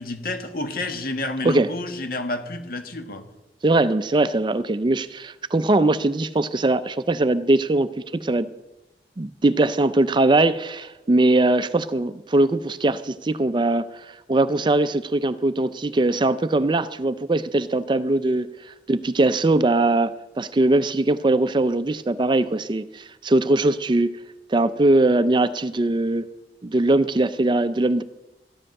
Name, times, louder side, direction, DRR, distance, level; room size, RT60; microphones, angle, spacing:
voice 1, 0.0-3.2, left 2 dB, 55° left, 7 dB, 1.5 m, -29 dB
voice 2, 3.6-8.5 9.2-24.1 24.5-26.3 26.6-28.0, right 2 dB, 25° right, 14 dB, 0.4 m, -21 dB
13.0 x 10.0 x 6.5 m, 0.97 s
head